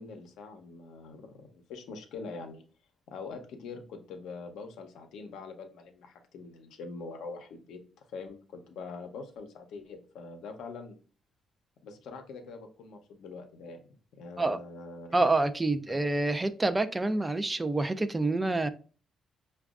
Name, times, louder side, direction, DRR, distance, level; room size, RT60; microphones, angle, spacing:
voice 1, 0.0-2.6 3.1-7.8 8.1-11.0 11.8-15.2 15.9-16.0, left 4 dB, 85° left, 0.6 m, -44 dB
voice 2, 15.1-18.7, right 2 dB, 20° right, 0.3 m, -27 dB
4.9 x 2.3 x 2.4 m
cardioid pair, 90°, 0 cm